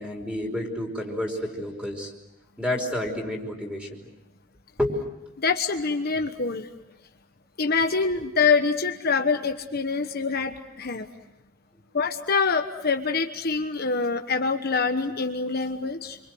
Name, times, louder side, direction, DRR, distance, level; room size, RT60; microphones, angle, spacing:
voice 1, 0.0-2.1 2.6-4.1 4.8-5.0, left 1 dB, 5° right, 2 dB, 4.9 m, -29 dB
voice 2, 5.4-6.7 7.6-11.1 11.9-16.2, left 4 dB, 50° left, 5 dB, 1.2 m, -25 dB
28.0 x 25.0 x 7.8 m, 0.98 s
head